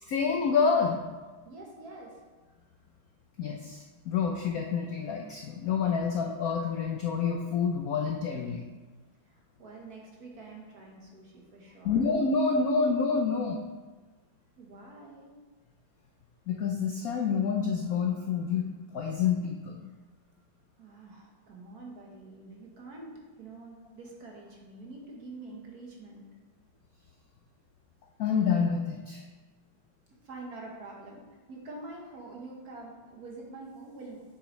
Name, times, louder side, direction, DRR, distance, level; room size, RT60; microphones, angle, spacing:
voice 1, 0.1-1.0 3.4-8.7 11.8-13.6 16.5-19.9 28.2-29.2, left 5 dB, 75° left, 2 dB, 0.8 m, -28 dB
voice 2, 1.4-2.2 9.3-12.0 14.6-15.3 20.8-26.3 30.1-31.2 31.5-34.2, right 2 dB, 50° right, -1 dB, 1.5 m, -46 dB
8.0 x 6.4 x 3.1 m, 1.3 s
omnidirectional pair, 2.2 m